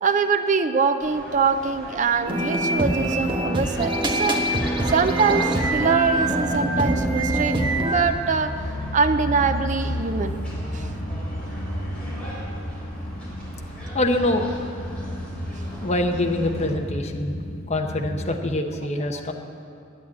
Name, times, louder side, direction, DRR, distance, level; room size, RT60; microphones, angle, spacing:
voice 1, 0.0-4.4 4.9-8.6 8.9-10.3 10.7-10.8, right 5 dB, 40° right, 9 dB, 0.6 m, -23 dB
sound 1, 1.0-16.7, equal, 5° left, 4.2 m, -39 dB
sound 2, 2.3-8.0, right 1 dB, 25° right, 1.3 m, -24 dB
sound 3, 5.7-18.4, equal, 70° left, 0.9 m, -32 dB
voice 2, 13.9-14.4 15.8-19.3, left 1 dB, 35° left, 3 dB, 0.9 m, -25 dB
11.5 x 9.5 x 8.5 m, 2.6 s
head